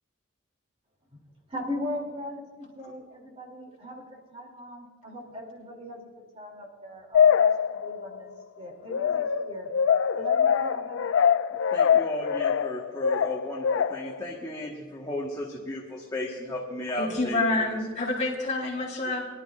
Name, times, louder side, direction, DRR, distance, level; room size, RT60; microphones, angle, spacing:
voice 1, 1.5-8.3 8.6-9.7 10.1-11.1, left 1 dB, 30° right, 0 dB, 2.7 m, -39 dB
sound 1, 7.1-8.2 8.9-14.2, left 7 dB, 65° left, 0.3 m, -23 dB
voice 2, 11.7-17.8, left 1 dB, 15° left, -3 dB, 1.3 m, -35 dB
voice 3, 17.0-19.2, left 2 dB, 35° left, -4 dB, 4.0 m, -27 dB
23.0 x 12.0 x 2.4 m, 1.5 s
head